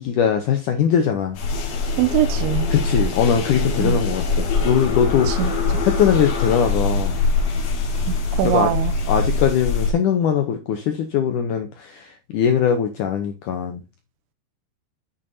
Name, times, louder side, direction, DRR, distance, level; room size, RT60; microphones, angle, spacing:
voice 1, 0.0-1.4 2.7-7.2 8.4-8.7 9.1-13.8, left 8 dB, 80° left, 1.8 m, -21 dB
sound 1, 1.3-9.9, left 3 dB, 60° left, 2.0 m, -23 dB
voice 2, 2.0-2.7 3.8-4.0 5.3-5.5 8.1-8.9, right 12 dB, 85° right, 2.6 m, -22 dB
8.7 x 7.2 x 2.6 m
omnidirectional pair, 4.6 m